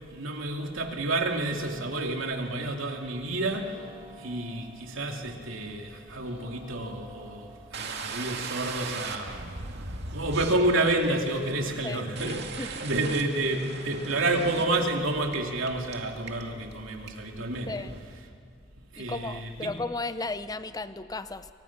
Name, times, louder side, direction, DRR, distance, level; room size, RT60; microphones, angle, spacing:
voice 1, 0.1-3.8 4.2-9.4 9.7-18.3 18.9-19.8, right 2 dB, 75° right, 2 dB, 2.8 m, -30 dB
sound 1, 1.6-15.5, equal, 30° right, 5.6 m, -55 dB
sound 2, 7.7-14.8 15.3-15.4 15.7-15.9 16.3-16.7 17.1-17.2 17.5-18.0, right 4 dB, 55° right, 2.3 m, -38 dB
voice 2, 11.8-12.7 17.7-18.0 19.0-21.5, left 3 dB, 20° left, 12 dB, 0.8 m, -35 dB
30.0 x 24.0 x 6.0 m, 2.4 s
head